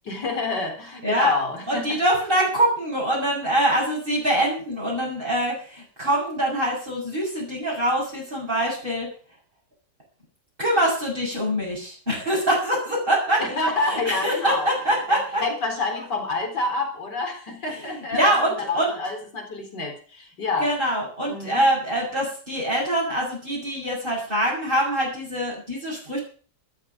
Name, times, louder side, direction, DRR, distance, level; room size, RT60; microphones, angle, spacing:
voice 1, 0.0-2.0 13.4-14.7 15.1-20.7 21.3-21.6, left 3 dB, 80° left, 3 dB, 4.7 m, -28 dB
voice 2, 1.7-9.1 10.6-15.4 17.7-18.9 20.6-26.2, right 1 dB, 30° right, -5 dB, 7.2 m, -24 dB
13.5 x 13.0 x 6.1 m, 0.41 s
omnidirectional pair, 1.8 m